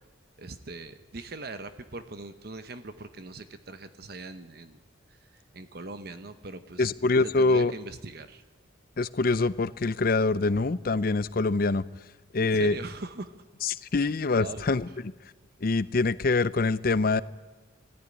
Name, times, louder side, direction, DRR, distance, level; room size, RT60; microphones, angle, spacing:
voice 1, 0.4-4.8 5.1-6.9 7.2-8.4 12.4-13.3 13.9-15.0, right 2 dB, 50° right, 10 dB, 0.9 m, -41 dB
voice 2, 6.8-7.7 9.0-11.8 12.3-12.8 13.6-14.9 15.6-17.2, left 3 dB, 45° left, 17 dB, 0.5 m, -24 dB
19.5 x 14.0 x 9.7 m, 1.3 s
head